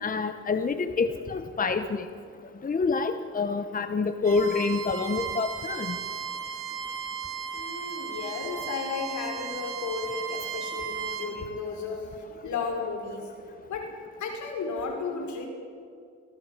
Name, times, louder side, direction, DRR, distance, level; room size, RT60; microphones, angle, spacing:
voice 1, 0.0-2.1 2.6-6.0, left 4 dB, 30° left, 9 dB, 1.1 m, -27 dB
Bowed string instrument, 4.2-11.3, right 7 dB, 45° right, 5.4 m, -35 dB
voice 2, 7.5-13.3 13.7-13.9 14.2-15.5, left 4 dB, 70° left, 3 dB, 5.7 m, -34 dB
25.5 x 17.5 x 7.5 m, 2.4 s
cardioid pair, 90°, 30 cm